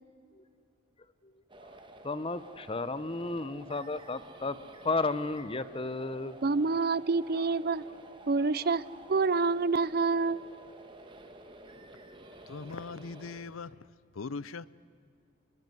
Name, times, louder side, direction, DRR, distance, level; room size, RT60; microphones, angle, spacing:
sound 1, 1.5-13.4, right 1 dB, 25° right, 1.9 m, -51 dB
voice 1, 2.0-6.4, left 3 dB, 25° left, 0.8 m, -33 dB
voice 2, 6.4-7.8 8.3-8.8 9.1-10.4, right 4 dB, 50° right, 0.6 m, -27 dB
voice 3, 12.5-13.7 14.2-14.7, left 4 dB, 90° left, 0.7 m, -39 dB
29.0 x 22.0 x 7.9 m
head